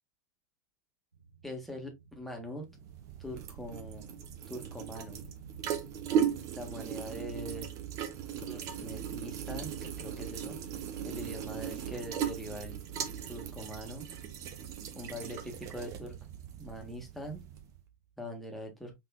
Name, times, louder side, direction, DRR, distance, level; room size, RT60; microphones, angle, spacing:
sound 1, 1.1-18.1, right 8 dB, 80° right, 0.7 m, -49 dB
voice 1, 1.4-2.7 3.2-4.1 4.5-5.2 6.5-7.8 8.4-10.6 11.0-12.8 13.3-14.1 14.9-16.2 16.6-17.4 18.2-18.9, equal, ahead, 1.6 m, -42 dB
sound 2, 2.7-17.8, right 8 dB, 35° right, 0.8 m, -38 dB
5.4 x 3.6 x 2.3 m
figure-of-eight pair, 95°, 10 cm